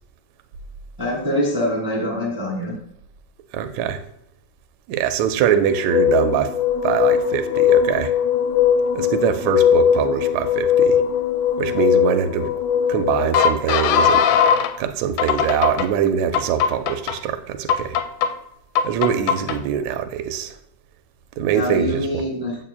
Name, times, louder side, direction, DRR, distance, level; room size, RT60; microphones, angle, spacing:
voice 1, 1.0-2.7 21.5-22.6, left 1 dB, 20° right, -2 dB, 0.5 m, -24 dB
voice 2, 3.5-4.0 4.9-6.5 6.8-8.1 8.9-11.0 11.6-12.5 12.9-14.3 14.8-18.0 18.8-20.6 21.4-22.2, right 9 dB, 80° right, 9 dB, 1.8 m, -23 dB
sound 1, 5.7-14.7 15.2-15.9 16.3-17.1 17.7-18.3 18.8-19.6, left 8 dB, 85° left, 2.0 m, -19 dB
8.9 x 7.5 x 2.2 m, 0.76 s
omnidirectional pair, 3.4 m